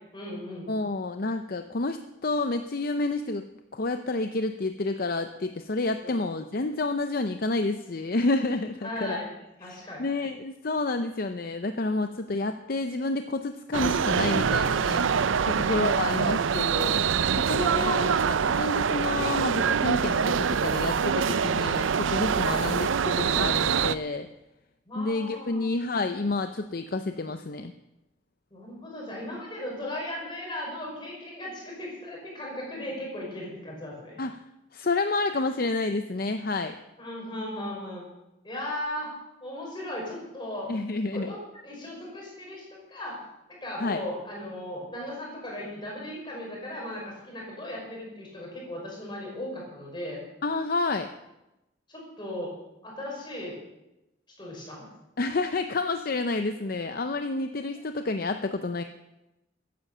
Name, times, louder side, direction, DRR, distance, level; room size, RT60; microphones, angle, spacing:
voice 1, 0.1-0.7 6.0-6.1 8.8-9.3 9.6-10.0 15.6-16.2 17.6-18.0 22.5-22.7 24.9-25.7 28.5-34.2 37.0-38.0 38.4-39.1 39.4-40.7 41.1-43.2 43.5-50.2 51.9-52.5 52.8-53.6 54.4-54.9, left 1 dB, 25° left, -2 dB, 5.6 m, -37 dB
voice 2, 0.7-3.4 3.7-9.2 9.6-15.1 15.4-17.0 17.4-24.3 24.9-27.7 34.2-34.4 34.7-36.7 40.7-41.3 43.8-44.0 50.4-51.1 55.2-58.8, left 3 dB, 50° left, 8 dB, 0.6 m, -29 dB
sound 1, 13.7-23.9, right 6 dB, 80° right, 0.5 m, -25 dB
14.5 x 10.5 x 6.8 m, 0.94 s
head